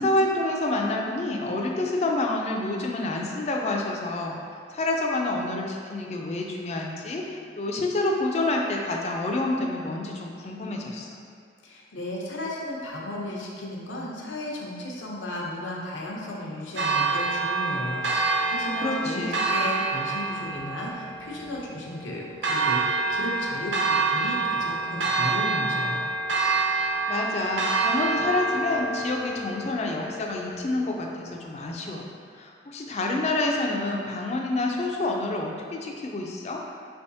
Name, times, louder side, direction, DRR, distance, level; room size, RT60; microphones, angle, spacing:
voice 1, 0.0-4.4 4.7-11.1 18.8-19.5 27.1-32.1 32.4-36.6, left 2 dB, 35° left, 0 dB, 0.4 m, -28 dB
voice 2, 11.6-26.0, left 1 dB, 85° left, -3 dB, 0.7 m, -34 dB
Church bell, 16.8-30.8, right 3 dB, 75° right, 0.5 m, -27 dB
4.7 x 3.4 x 2.7 m, 2.2 s
head